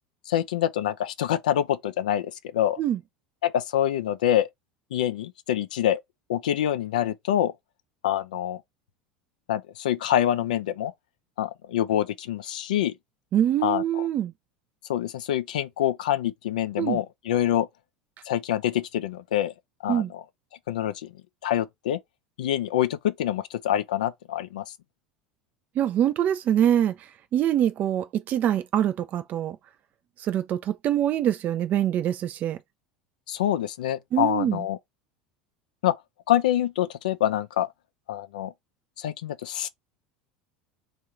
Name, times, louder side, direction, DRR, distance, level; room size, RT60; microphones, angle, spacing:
voice 1, 0.3-2.8 3.4-4.5 4.9-6.0 6.3-7.5 8.0-8.6 9.5-10.9 11.4-12.9 13.6-14.0 14.9-17.7 18.3-19.5 19.8-20.2 20.7-21.1 21.4-22.0 22.4-24.7 33.3-34.8 35.8-35.9 36.3-37.7 38.1-38.5 39.0-39.7, left 11 dB, 65° left, 0.4 m, -26 dB
voice 2, 13.3-14.3 16.8-17.0 19.9-20.1 25.8-29.6 30.2-32.6 34.1-34.6, right 10 dB, 35° right, 0.4 m, -24 dB
3.5 x 2.5 x 4.5 m
figure-of-eight pair, 75°, 5 cm